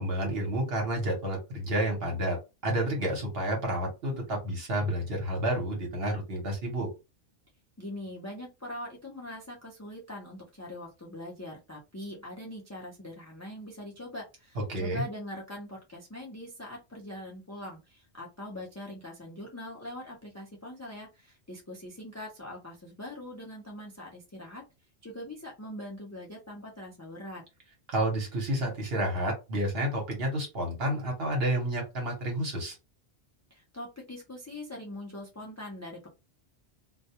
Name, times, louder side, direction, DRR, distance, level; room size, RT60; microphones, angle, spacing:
voice 1, 0.0-6.9 14.6-15.0 27.9-32.8, right 1 dB, 60° right, 1 dB, 1.0 m, -30 dB
voice 2, 7.8-24.6 25.0-27.4 33.5-36.1, left 1 dB, 25° left, 0 dB, 0.4 m, -42 dB
2.2 x 2.2 x 2.8 m, 0.27 s
omnidirectional pair, 1.1 m